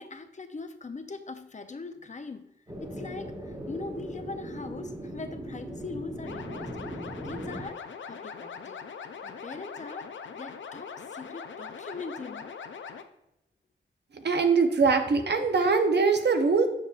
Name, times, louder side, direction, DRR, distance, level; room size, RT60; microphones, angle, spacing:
voice 1, 0.0-2.5 2.8-8.8 9.2-12.5, left 4 dB, 40° left, 0.5 m, -41 dB
sound 1, 2.7-7.7, right 1 dB, 20° right, 1.3 m, -39 dB
sound 2, 6.2-13.0, left 6 dB, 85° left, 0.5 m, -41 dB
voice 2, 14.1-16.7, right 4 dB, 65° right, 0.8 m, -23 dB
7.1 x 6.6 x 2.4 m
wide cardioid pair, 75°, 19 cm